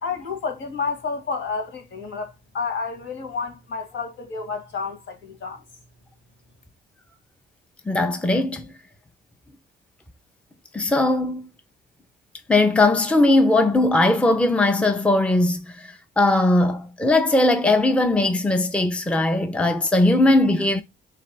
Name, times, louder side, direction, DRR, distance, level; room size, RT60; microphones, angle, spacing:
voice 1, 0.0-5.6, left 4 dB, 75° left, 1.9 m, -30 dB
voice 2, 7.9-8.7 10.7-11.5 12.5-20.8, left 2 dB, 5° left, 0.6 m, -19 dB
3.3 x 3.2 x 4.0 m
cardioid pair, 90°, 20 cm